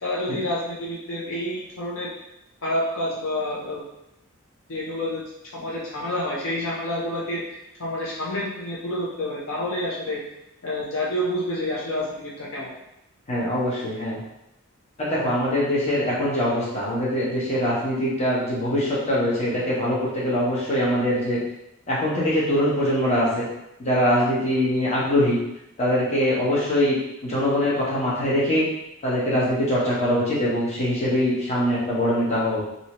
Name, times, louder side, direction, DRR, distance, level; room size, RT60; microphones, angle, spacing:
voice 1, 0.0-2.1 2.6-3.8 4.7-5.2 5.5-7.4 7.8-10.2 10.6-12.7, left 1 dB, 65° left, -5 dB, 0.6 m, -28 dB
voice 2, 13.3-14.2 15.0-21.4 21.9-23.4 23.8-25.4 25.8-27.0 27.2-28.6 29.0-32.6, equal, 30° left, -7 dB, 1.0 m, -23 dB
2.7 x 2.7 x 3.0 m, 0.85 s
head